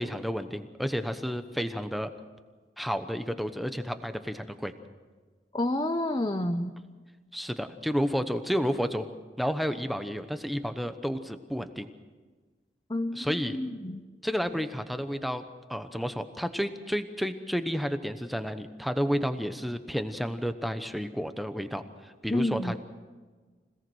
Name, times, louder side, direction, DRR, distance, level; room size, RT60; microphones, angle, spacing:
voice 1, 0.0-2.1 2.8-4.7 7.3-9.1 9.4-11.9 13.1-13.6 14.2-15.4 15.7-22.8, equal, ahead, 9 dB, 1.0 m, -31 dB
voice 2, 5.5-6.7 12.9-14.0 22.3-22.7, left 1 dB, 25° left, 6 dB, 0.7 m, -29 dB
26.0 x 17.5 x 6.3 m, 1.4 s
head